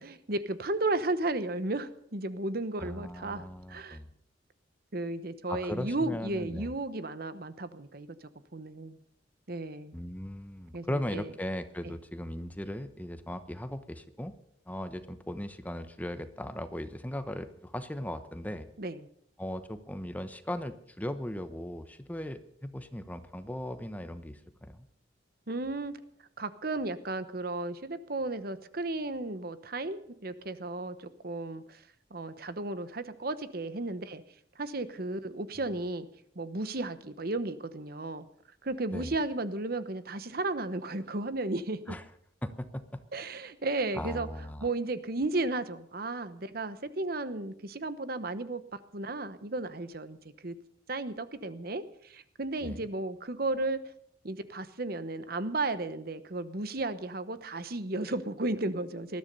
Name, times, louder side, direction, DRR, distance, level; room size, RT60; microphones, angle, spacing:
voice 1, 0.0-4.0 4.9-9.0 9.5-10.0 10.7-11.3 18.8-19.1 25.5-26.0 26.4-31.8 32.1-34.2 34.6-36.1 36.3-38.3 38.6-41.9 43.1-44.3 44.6-50.5 50.9-53.8 54.2-59.2, right 2 dB, 55° right, 13 dB, 1.0 m, -34 dB
voice 2, 2.8-4.1 5.5-6.7 9.9-14.3 14.7-18.7 19.4-24.9 38.9-39.1 41.9-42.0 42.4-43.0 43.9-44.7 52.6-52.9, left 1 dB, 10° left, 10 dB, 1.0 m, -38 dB
20.0 x 13.5 x 5.4 m, 0.69 s
head